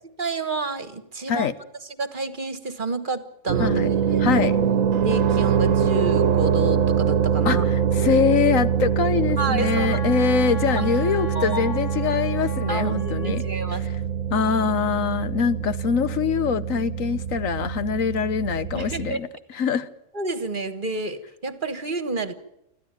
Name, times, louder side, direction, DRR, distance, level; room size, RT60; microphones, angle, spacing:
voice 1, 0.2-1.5 2.0-4.3 5.0-7.6 9.4-10.0 10.8-10.9 11.3-11.7 12.7-13.9 18.7-19.2 20.1-22.3, right 3 dB, 40° right, 12 dB, 1.5 m, -29 dB
sound 1, 3.5-19.1, right 7 dB, 80° right, 1.4 m, -24 dB
voice 2, 4.2-4.6 7.4-13.4 14.3-19.9, left 6 dB, 85° left, 13 dB, 1.4 m, -24 dB
Wind instrument woodwind instrument, 9.6-13.4, left 4 dB, 40° left, 7.3 m, -37 dB
26.5 x 14.5 x 9.0 m, 0.86 s
omnidirectional pair, 1.4 m